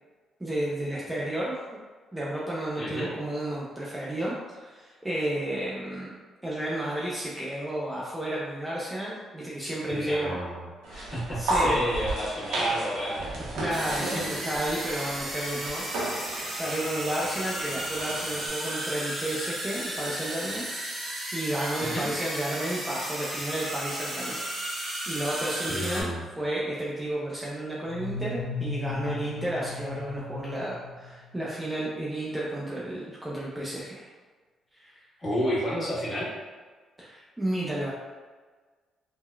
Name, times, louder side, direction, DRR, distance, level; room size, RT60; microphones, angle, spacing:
voice 1, 0.4-1.5 2.1-6.2 6.4-10.4 11.4-11.8 13.5-20.6 21.3-26.1 26.4-34.1 34.7-35.0 37.0-37.9, right 1 dB, 10° right, -6 dB, 0.5 m, -32 dB
voice 2, 2.8-3.1 9.9-10.6 10.9-13.5 21.8-22.1 23.4-23.5 25.7-26.2 35.2-36.3, equal, 30° left, -9 dB, 1.4 m, -30 dB
sound 1, 10.8-18.5, right 1 dB, 90° right, 0.7 m, -33 dB
sound 2, 13.7-26.0, right 1 dB, 45° right, 0.9 m, -34 dB
sound 3, 27.9-31.5, left 3 dB, 60° left, 0.5 m, -36 dB
3.7 x 2.1 x 2.2 m, 1.4 s
cardioid pair, 90°, 0 cm